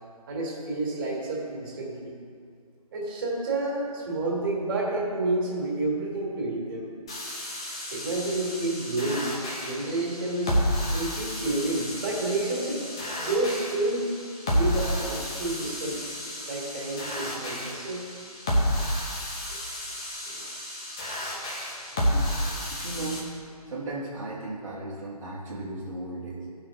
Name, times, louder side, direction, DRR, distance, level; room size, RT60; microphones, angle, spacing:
voice 1, 0.3-2.2 2.9-6.9 7.9-10.6 10.9-14.1 14.5-16.0 16.5-18.1 19.5-19.6 19.9-20.0 20.2-20.5 21.9-22.1 22.4-22.6, right 2 dB, 35° right, -3 dB, 2.3 m, -30 dB
sound 1, 7.1-23.2, equal, 10° left, 0.4 m, -31 dB
voice 2, 22.7-23.4 23.7-26.5, right 2 dB, 50° right, -7 dB, 1.5 m, -36 dB
15.5 x 5.7 x 3.8 m, 2.3 s
figure-of-eight pair, 155°, 20 cm